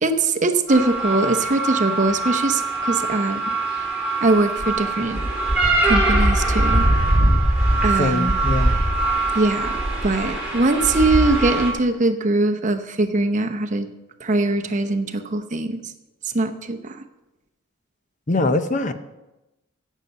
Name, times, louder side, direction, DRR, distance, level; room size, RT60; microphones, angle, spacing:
voice 1, 0.0-3.5 4.2-5.2 5.8-6.9 7.8-8.3 9.3-13.9 14.2-15.8 16.3-17.0, right 2 dB, 35° right, 7 dB, 0.8 m, -21 dB
sound 1, 0.7-11.7, right 2 dB, 5° right, 4.5 m, -21 dB
voice 2, 8.0-8.8 18.3-18.9, left 2 dB, 35° left, 9 dB, 0.7 m, -22 dB
16.5 x 7.4 x 5.4 m, 0.99 s
head